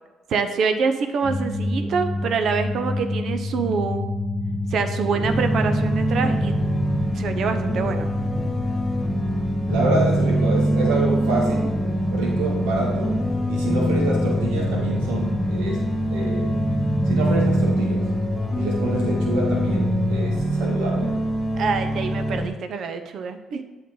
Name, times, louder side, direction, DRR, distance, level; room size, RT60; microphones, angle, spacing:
voice 1, 0.3-4.1 4.7-6.5 7.1-8.1 13.9-14.1 21.5-23.6, right 5 dB, 65° right, 8 dB, 0.8 m, -25 dB
sound 1, 1.2-20.2, left 2 dB, 30° left, 1.2 m, -28 dB
sound 2, 5.2-22.5, right 1 dB, 5° left, 2.3 m, -24 dB
voice 2, 9.7-11.8 12.1-13.2 13.5-15.8 16.1-16.6 17.0-18.1 18.5-21.2, right 2 dB, 90° right, -3 dB, 2.1 m, -27 dB
8.4 x 5.7 x 3.8 m, 1.3 s
supercardioid pair, 60°, 0 cm